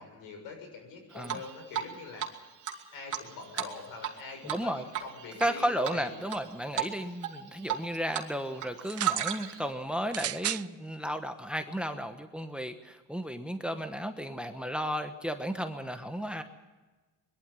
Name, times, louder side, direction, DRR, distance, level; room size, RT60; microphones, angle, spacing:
voice 1, 0.0-2.4 2.9-6.2, left 4 dB, 85° left, 4 dB, 6.8 m, -44 dB
Drip, 1.2-1.9 2.2-2.3 2.6-4.2 4.5-4.6 4.9-5.5 5.8-6.4 6.7-6.9 7.2-8.3 8.5-9.7, right 11 dB, 65° right, 2.7 m, -33 dB
voice 2, 4.5-4.8 5.4-16.4, equal, 5° right, 8 dB, 1.1 m, -34 dB
sound 1, 8.8-9.2 10.1-10.7 11.6-11.7, right 12 dB, 45° right, 0.6 m, -34 dB
21.5 x 12.5 x 9.8 m, 1.2 s
cardioid pair, 120°, 34 cm